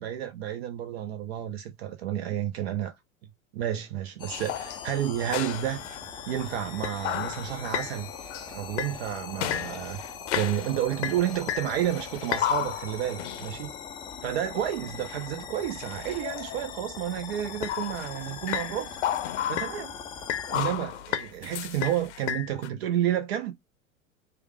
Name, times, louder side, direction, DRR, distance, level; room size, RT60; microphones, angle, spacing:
voice 1, 0.0-3.0 3.5-5.8 6.3-8.1 8.5-10.0 10.3-13.7 14.2-19.0 19.5-19.9 20.5-23.5, right 11 dB, 50° right, 0.5 m, -30 dB
sound 1, 4.2-20.6, left 6 dB, 10° left, 0.3 m, -41 dB
sound 2, 4.3-6.0 6.4-6.5 6.8-7.9 8.3-8.5 8.8-9.1 9.4-10.8 11.0-13.6 15.0-15.1 15.8-17.0 17.6-18.1 18.5-19.9 20.3-22.7, left 10 dB, 60° left, 0.6 m, -32 dB
3.1 x 2.0 x 3.1 m
figure-of-eight pair, 85°, 41 cm